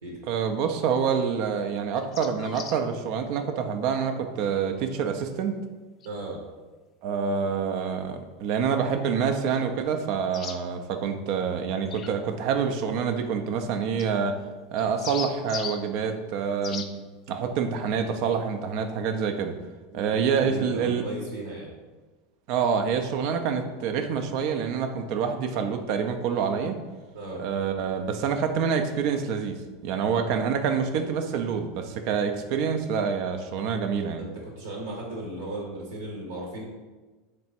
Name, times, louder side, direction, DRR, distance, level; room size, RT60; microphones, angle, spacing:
voice 1, 0.3-5.5 7.0-14.4 14.7-16.9 17.3-19.5 19.9-21.0 22.5-26.8 27.4-34.2, right 6 dB, 60° right, 6 dB, 0.5 m, -27 dB
sound 1, 2.0-2.8 6.0-6.1 10.3-10.6 11.9-12.1 14.0-14.1 14.8-15.8 16.6-16.9, left 6 dB, 40° left, 0.4 m, -37 dB
voice 2, 6.0-6.4 19.9-20.1 20.4-21.7 27.1-27.4 34.2-34.3 34.5-36.6, right 1 dB, 80° right, -2 dB, 0.9 m, -36 dB
3.4 x 3.1 x 4.3 m, 1.3 s
hypercardioid pair, 90°, 0 cm